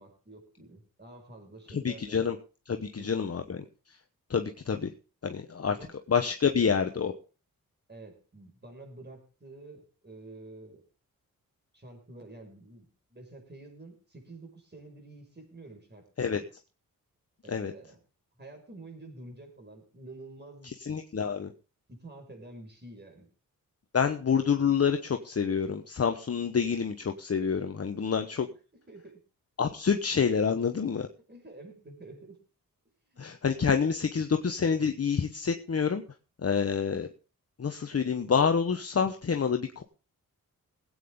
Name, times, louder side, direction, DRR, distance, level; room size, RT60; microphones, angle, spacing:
voice 1, 0.0-2.2 2.7-3.3 5.7-5.9 7.9-10.8 11.7-16.0 16.3-16.5 17.4-18.0 18.4-20.7 21.1-21.5 21.9-23.3 28.9-29.2 31.3-32.4 33.1-33.8, right 2 dB, 30° right, 3 dB, 5.4 m, -49 dB
voice 2, 1.7-2.4 2.7-3.6 4.3-4.9 5.2-5.8 6.1-7.1 16.2-16.4 17.5-17.7 20.6-21.5 23.9-28.5 29.6-31.1 33.2-36.0 36.4-37.1 37.6-39.8, left 6 dB, 45° left, 6 dB, 1.0 m, -27 dB
20.5 x 8.9 x 3.7 m, 0.34 s
cardioid pair, 75°, 35 cm